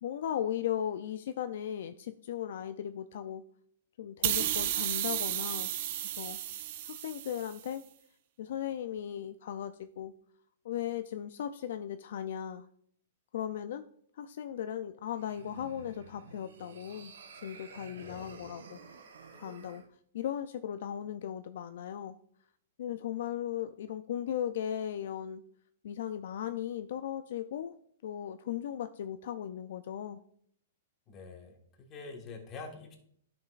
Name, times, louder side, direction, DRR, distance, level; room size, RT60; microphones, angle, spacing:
voice 1, 0.0-3.4 4.0-5.7 6.0-6.4 6.8-7.8 8.4-10.1 10.6-12.7 13.3-13.8 14.1-17.1 17.4-18.8 19.4-19.8 20.1-22.2 22.8-25.4 25.8-27.7 28.0-30.2, left 10 dB, 65° left, 10 dB, 0.4 m, -37 dB
sound 1, 4.2-7.6, right 12 dB, 50° right, 0.6 m, -33 dB
sound 2, 15.1-19.9, right 5 dB, 85° right, 1.0 m, -51 dB
voice 2, 17.9-18.5 31.1-33.0, left 4 dB, 25° left, 2 dB, 1.5 m, -46 dB
10.5 x 6.0 x 2.4 m, 0.66 s
hypercardioid pair, 150°, 0 cm